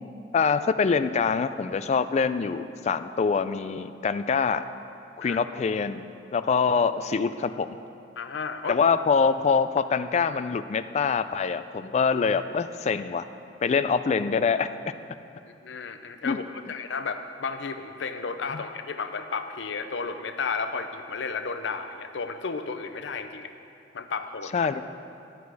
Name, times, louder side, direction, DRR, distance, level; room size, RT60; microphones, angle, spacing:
voice 1, 0.3-4.7 5.2-6.1 6.3-7.8 8.7-13.2 13.6-14.7 16.2-16.4 18.5-18.6 24.5-24.8, left 5 dB, 40° left, 11 dB, 0.3 m, -24 dB
voice 2, 8.2-8.8 15.4-16.4 16.7-23.5 23.9-24.7, left 5 dB, 80° left, 8 dB, 0.6 m, -33 dB
11.5 x 8.1 x 4.7 m, 2.5 s
head